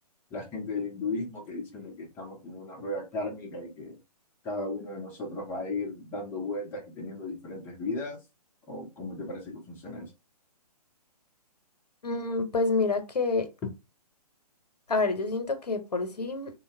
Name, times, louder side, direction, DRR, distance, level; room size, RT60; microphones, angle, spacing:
voice 1, 0.3-4.0 4.4-8.2 8.7-10.1, left 2 dB, 10° left, 0.6 m, -35 dB
voice 2, 12.0-13.5 14.9-16.5, left 3 dB, 75° left, 0.8 m, -28 dB
2.7 x 2.0 x 2.7 m
figure-of-eight pair, 130°, 21 cm